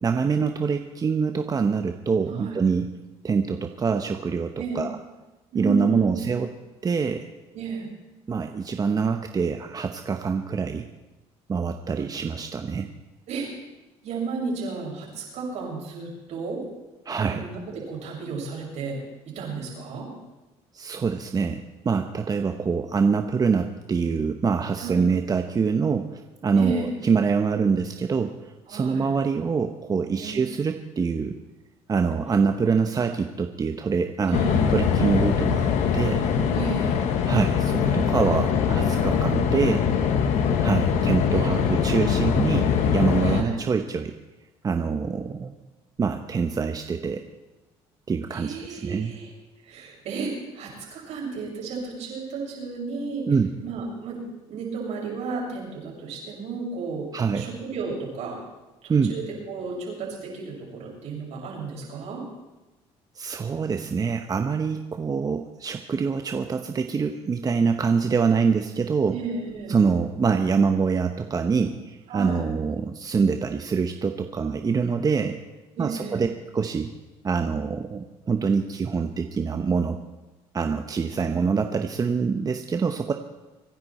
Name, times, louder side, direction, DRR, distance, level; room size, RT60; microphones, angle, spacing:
voice 1, 0.0-2.9 3.2-5.0 5.5-6.5 6.8-7.3 8.3-10.9 11.5-12.9 17.0-17.4 20.7-31.3 31.9-34.4 34.7-35.7 35.9-36.2 37.3-39.8 40.6-44.1 44.6-45.5 46.0-47.2 48.1-49.1 53.3-53.5 57.1-57.5 58.9-59.1 63.1-69.1 69.7-75.4 75.8-76.3 76.5-76.9 77.2-80.0 80.5-83.1, right 5 dB, 30° right, 6 dB, 0.9 m, -25 dB
voice 2, 2.3-2.6 4.6-4.8 5.5-6.3 7.5-7.9 13.3-13.5 14.0-16.6 17.2-19.0 19.3-20.1 24.8-25.1 26.5-26.9 28.7-29.1 30.2-30.4 34.2-34.7 36.5-37.0 41.2-41.8 43.2-43.5 48.3-49.3 49.6-53.3 53.6-54.2 54.5-57.1 57.3-58.4 58.8-62.2 69.1-69.8 72.1-72.4 75.7-76.2, right 4 dB, 70° right, -3 dB, 6.6 m, -33 dB
sound 1, 34.3-43.4, left 7 dB, 75° left, 1.6 m, -22 dB
24.5 x 10.5 x 4.3 m, 1.1 s
cardioid pair, 90°, 12 cm